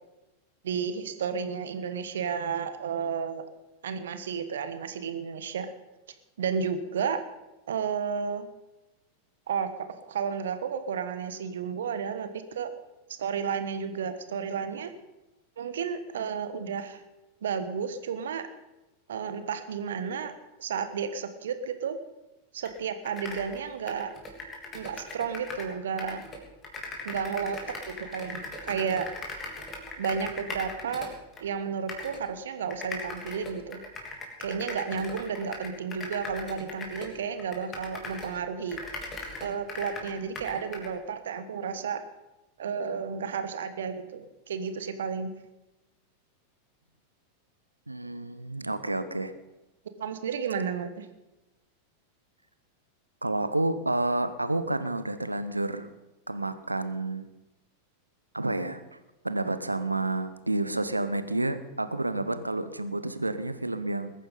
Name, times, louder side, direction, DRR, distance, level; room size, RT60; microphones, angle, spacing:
voice 1, 0.6-3.4 3.8-5.7 6.4-7.2 7.7-8.5 9.5-12.7 13.2-14.9 15.6-17.0 17.4-18.5 19.1-20.3 20.6-22.0 22.5-24.1 24.7-26.2 27.0-29.1 30.0-31.1 31.4-33.8 34.4-38.8 39.4-42.0 42.6-45.3 50.0-51.1, right 6 dB, 60° right, 10 dB, 1.3 m, -32 dB
sound 1, 22.6-22.7 23.0-25.7 26.0-31.4 31.9-32.2 32.7-38.4 38.7-40.9, left 2 dB, 25° left, 3.2 m, -39 dB
voice 2, 47.9-49.3 53.2-55.9 56.3-57.3 58.3-58.8 59.2-64.1, right 2 dB, 85° right, 11 dB, 0.9 m, -30 dB
21.0 x 9.2 x 5.5 m, 1.0 s
figure-of-eight pair, 90°, 0 cm